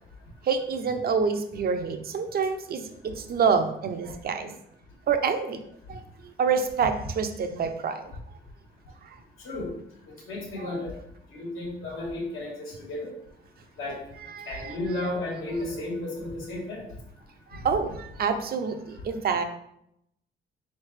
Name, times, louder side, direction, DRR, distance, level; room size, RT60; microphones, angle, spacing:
voice 1, 0.4-4.6 5.1-5.6 5.9-8.1 9.0-9.2 10.6-10.8 14.2-14.7 17.5-19.4, right 6 dB, 50° right, 7 dB, 0.5 m, -27 dB
voice 2, 10.3-10.9 11.3-13.1 13.8-14.0 14.5-16.9 18.2-18.3, left 2 dB, 85° left, -2 dB, 1.4 m, -33 dB
3.9 x 3.2 x 3.2 m, 0.76 s
cardioid pair, 90°, 20 cm